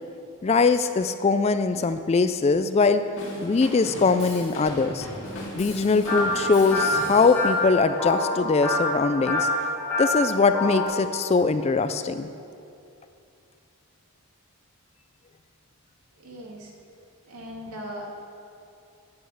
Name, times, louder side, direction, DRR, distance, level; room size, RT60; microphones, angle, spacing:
voice 1, 0.4-3.0 3.4-5.1 5.6-9.5 10.0-12.3, left 4 dB, 30° left, 11 dB, 0.3 m, -22 dB
Drum kit / Drum, 3.2-7.6, left 1 dB, 55° left, 2.3 m, -37 dB
sound 1, 6.1-10.9, left 1 dB, 10° left, 3.0 m, -26 dB
voice 2, 16.2-16.7 17.3-18.2, equal, 80° right, -2 dB, 2.2 m, -39 dB
8.7 x 8.6 x 7.3 m, 2.6 s
head